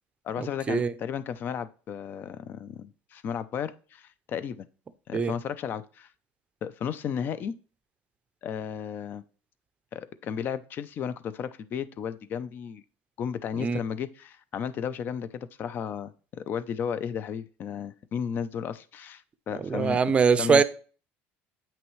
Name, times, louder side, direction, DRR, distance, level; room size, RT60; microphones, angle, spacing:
voice 1, 0.2-4.7 5.1-6.1 6.6-7.6 8.4-9.2 9.9-12.8 13.2-20.0 20.4-20.6, left 7 dB, 40° left, 0.6 m, -34 dB
voice 2, 19.6-20.6, right 5 dB, 25° right, 0.6 m, -22 dB
8.9 x 5.9 x 3.2 m
cardioid pair, 140°, 5 cm